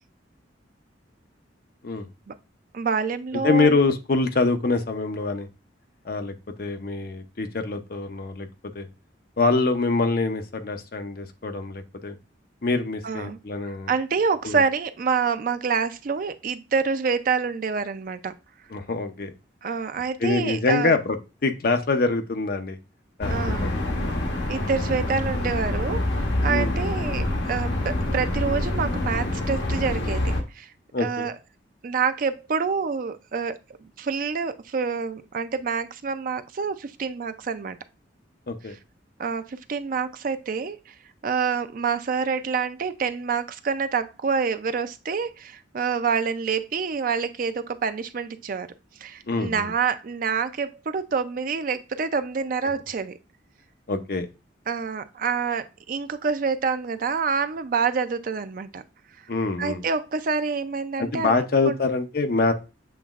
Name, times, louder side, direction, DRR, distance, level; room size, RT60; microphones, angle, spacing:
voice 1, 2.7-3.8 13.0-13.4 13.9-18.3 19.6-20.9 23.3-23.7 24.5-30.7 31.0-31.3 31.8-37.8 39.2-40.9 41.2-48.7 49.0-53.2 54.7-58.8 59.6-61.8, right 5 dB, 45° right, 11 dB, 0.4 m, -27 dB
voice 2, 3.4-5.5 6.0-6.3 6.6-8.5 8.7-8.9 9.4-12.2 12.6-13.9 14.4-14.6 18.7-19.3 20.2-21.2 21.4-22.8 23.2-23.4 23.6-23.7 26.5-26.7 30.9-31.3 38.5-38.7 49.3-49.7 53.9-54.3 59.3-59.8 61.0-62.5, left 3 dB, 50° left, 7 dB, 0.6 m, -24 dB
sound 1, 23.2-30.4, left 1 dB, 70° left, 1.0 m, -26 dB
7.3 x 3.0 x 2.4 m, 0.28 s
head